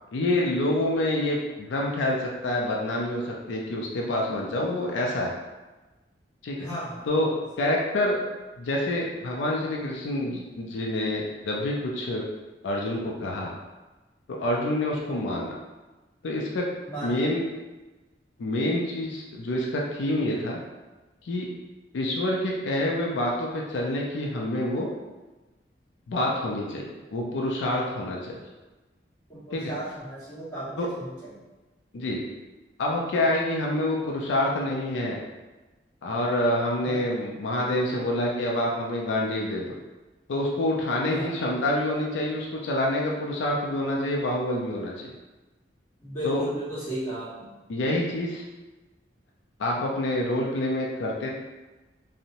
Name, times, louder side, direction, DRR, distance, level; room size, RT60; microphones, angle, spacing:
voice 1, 0.1-5.3 6.4-6.7 7.1-7.3 7.6-8.2 8.6-12.2 12.6-13.5 14.3-15.5 16.2-16.7 17.0-17.4 18.4-20.6 21.2-21.5 21.9-24.9 26.1-28.4 29.5-29.7 30.8-30.9 31.9-32.2 32.8-35.2 36.0-39.6 40.3-45.1 46.2-46.4 47.7-48.4 49.6-51.3, left 1 dB, 85° left, -2 dB, 0.4 m, -27 dB
voice 2, 6.6-7.1 14.9-15.1 16.9-17.2 29.3-31.3 36.8-37.1 41.1-41.3 46.0-47.5, equal, 15° left, -13 dB, 1.2 m, -35 dB
2.8 x 2.0 x 2.6 m, 1.2 s
head